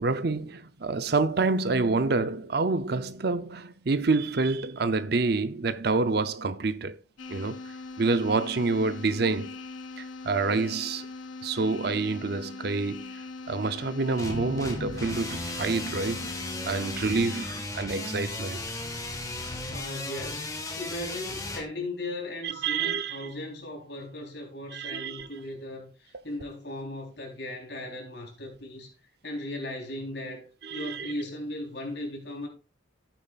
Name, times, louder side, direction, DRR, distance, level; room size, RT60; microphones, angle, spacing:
voice 1, 0.0-7.0 7.3-9.6 10.0-11.1 11.4-16.4 16.7-18.6 22.4-23.3 24.7-25.3 30.6-31.1, right 3 dB, 55° right, 0.6 m, -28 dB
sound 1, 7.2-17.4, left 3 dB, 85° left, 1.0 m, -41 dB
sound 2, 14.2-21.6, left 2 dB, 15° left, 1.5 m, -35 dB
voice 2, 19.7-28.9 29.2-30.4 30.7-32.5, left 1 dB, 60° left, 3.7 m, -37 dB
12.5 x 8.8 x 2.4 m
head